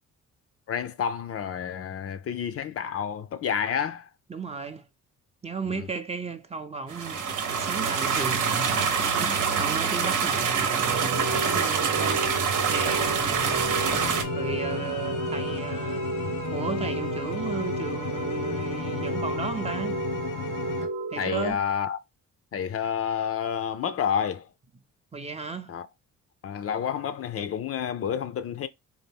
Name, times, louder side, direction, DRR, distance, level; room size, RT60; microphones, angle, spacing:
voice 1, 0.7-4.1 5.6-5.9 21.2-22.0 22.5-24.5 25.7-25.9 26.4-28.7, left 8 dB, 50° left, 0.5 m, -29 dB
voice 2, 4.3-4.9 5.4-8.8 9.2-12.3 12.7-13.8 14.3-16.1 16.5-20.0 21.1-21.6 25.1-25.7, right 4 dB, 20° right, 0.5 m, -35 dB
sound 1, 6.9-14.2, right 6 dB, 85° right, 0.9 m, -25 dB
sound 2, 10.8-21.5, right 3 dB, 65° right, 0.6 m, -32 dB
sound 3, 12.7-20.9, left 8 dB, 85° left, 1.0 m, -35 dB
4.0 x 2.6 x 3.4 m
cardioid pair, 90°, 30 cm